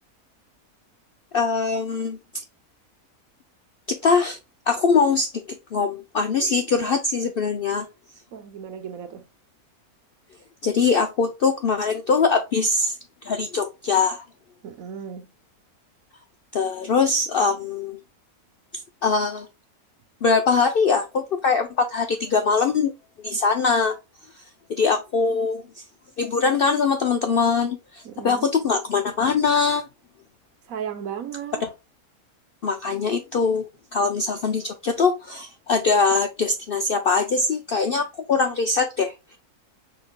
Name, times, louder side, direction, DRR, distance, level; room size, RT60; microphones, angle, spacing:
voice 1, 1.3-2.2 3.9-4.4 4.7-5.4 5.7-7.9 10.6-13.0 13.2-14.2 16.5-18.0 19.0-19.5 20.2-22.9 23.2-24.0 24.7-25.6 26.2-29.8 31.6-31.7 32.6-39.1, left 4 dB, 65° left, 0.5 m, -22 dB
voice 2, 8.3-9.2 14.6-15.3 28.0-28.5 30.7-31.6, right 8 dB, 70° right, 1.2 m, -35 dB
5.0 x 4.0 x 2.2 m
omnidirectional pair, 1.5 m